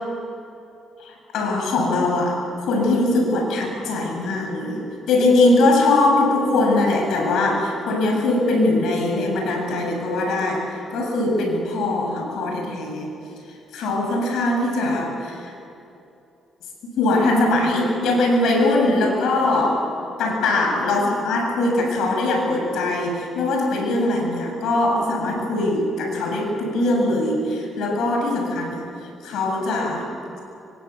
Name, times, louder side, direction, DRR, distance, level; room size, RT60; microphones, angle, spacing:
voice 1, 1.0-4.8 5.1-13.1 13.7-15.5 16.8-19.8 20.2-28.8 29.2-30.1, left 2 dB, 80° left, 2 dB, 7.7 m, -21 dB
26.0 x 24.5 x 8.6 m, 2.8 s
cardioid pair, 90°, 0 cm